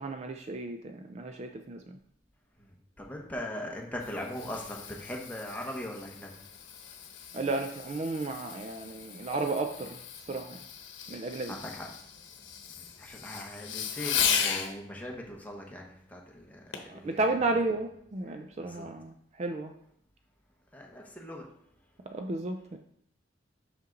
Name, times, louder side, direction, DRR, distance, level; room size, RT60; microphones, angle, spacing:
voice 1, 0.0-2.0 7.3-10.6 11.1-11.5 16.9-19.7 22.1-22.8, right 2 dB, 35° right, 5 dB, 0.4 m, -33 dB
voice 2, 2.6-6.3 11.5-11.9 12.8-17.2 18.3-18.9 20.7-21.5, left 1 dB, 10° left, -1 dB, 1.0 m, -40 dB
Fireworks, 3.7-14.7 16.7-17.0 17.6-17.7, left 7 dB, 80° left, 0.9 m, -36 dB
5.9 x 5.6 x 3.8 m, 0.68 s
head